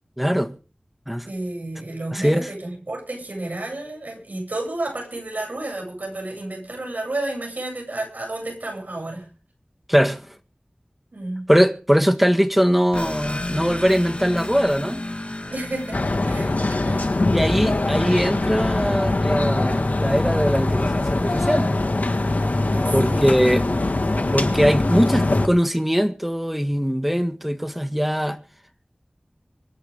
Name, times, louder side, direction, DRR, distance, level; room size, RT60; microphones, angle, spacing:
voice 1, 0.2-0.5 1.1-1.3 2.1-2.5 9.9-10.2 11.5-15.0 17.3-21.8 22.9-23.7 24.3-28.4, equal, 5° right, 1.8 m, -21 dB
voice 2, 1.2-9.3 11.1-11.5 15.5-17.1 22.7-23.4, right 2 dB, 85° right, 7.8 m, -31 dB
sound 1, 12.9-19.2, left 1 dB, 45° left, 1.9 m, -34 dB
sound 2, 15.9-25.5, left 2 dB, 75° left, 1.8 m, -22 dB
24.5 x 11.0 x 3.7 m
wide cardioid pair, 50°, 3 cm